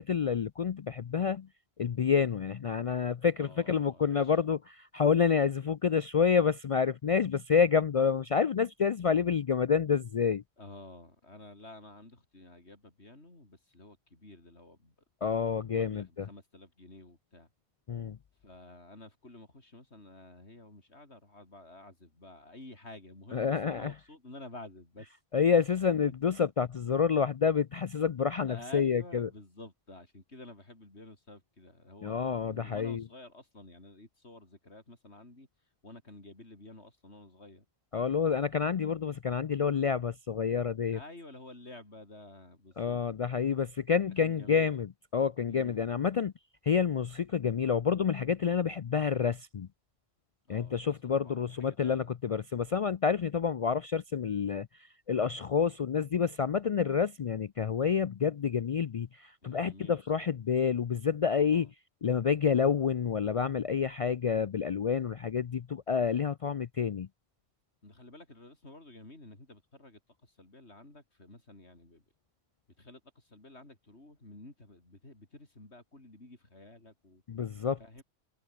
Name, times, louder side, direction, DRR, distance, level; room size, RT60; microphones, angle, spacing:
voice 1, 0.0-1.5 1.8-10.4 15.2-16.3 17.9-18.2 23.3-23.9 25.3-29.3 32.0-33.0 37.9-41.0 42.8-46.3 46.6-49.7 50.5-61.7 62.0-67.1 77.3-77.8, left 6 dB, 55° left, 0.3 m, -28 dB
voice 2, 3.4-4.4 10.6-15.0 15.2-17.5 18.4-25.2 28.5-35.5 35.8-37.7 40.9-43.0 44.1-44.8 45.5-45.9 50.5-52.1 59.4-60.3 61.4-61.7 67.8-72.0 72.8-77.2 77.8-78.0, left 2 dB, 85° left, 5.6 m, -51 dB
omnidirectional pair, 1.1 m